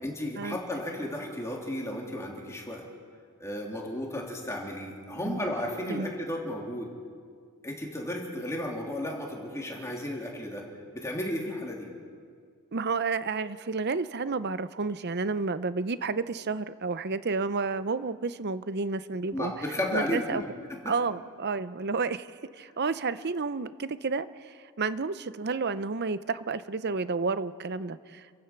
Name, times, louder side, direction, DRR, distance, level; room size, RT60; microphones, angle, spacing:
voice 1, 0.0-2.9 3.4-6.9 7.6-10.7 10.9-11.9 19.3-20.9, left 1 dB, 15° left, -1 dB, 3.2 m, -34 dB
voice 2, 12.7-19.5 19.9-20.4 20.9-22.3 22.6-28.3, right 4 dB, 50° right, 14 dB, 0.7 m, -31 dB
30.0 x 15.5 x 6.0 m, 2.1 s
head